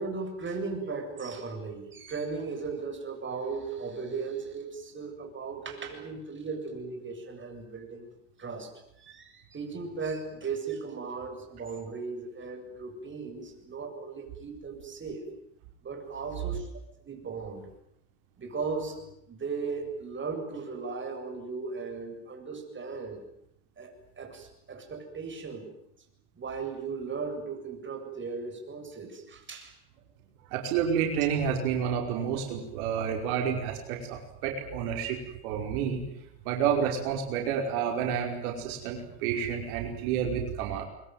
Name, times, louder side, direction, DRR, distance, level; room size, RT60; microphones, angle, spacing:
voice 1, 0.0-8.1 8.4-15.2 15.8-16.7 17.0-17.7 18.4-23.2 23.8-25.7 26.4-29.7, right 4 dB, 25° right, 3 dB, 7.7 m, -37 dB
voice 2, 30.5-36.0 36.5-40.9, right 7 dB, 80° right, 2 dB, 5.3 m, -29 dB
24.0 x 22.5 x 9.4 m, 0.78 s
supercardioid pair, 105°, 42 cm